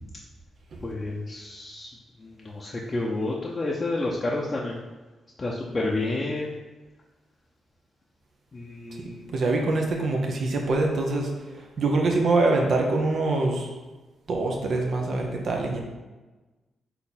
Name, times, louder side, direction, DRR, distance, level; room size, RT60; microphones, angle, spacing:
voice 1, 0.8-1.9 2.2-4.8 5.4-6.5 8.5-9.2, left 2 dB, 35° left, -3 dB, 0.6 m, -30 dB
voice 2, 9.3-11.3 11.8-13.7 14.3-15.8, right 2 dB, 65° right, 1 dB, 0.7 m, -24 dB
4.3 x 2.7 x 4.1 m, 1.2 s
cardioid pair, 65°, 0 cm